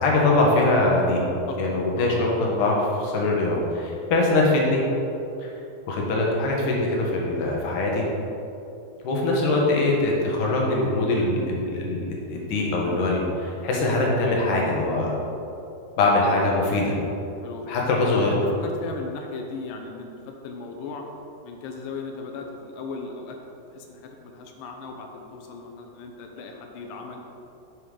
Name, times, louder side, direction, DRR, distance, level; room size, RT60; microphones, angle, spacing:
voice 1, 0.0-1.2 1.6-4.9 5.4-5.5 5.9-8.1 9.0-15.2 16.0-17.0 17.7-18.3, left 2 dB, 70° left, -2 dB, 2.7 m, -22 dB
voice 2, 2.0-2.3 17.4-21.1 21.4-23.4 23.7-27.2, left 4 dB, 85° left, 2 dB, 2.5 m, -37 dB
7.7 x 5.5 x 4.9 m, 2.8 s
omnidirectional pair, 3.9 m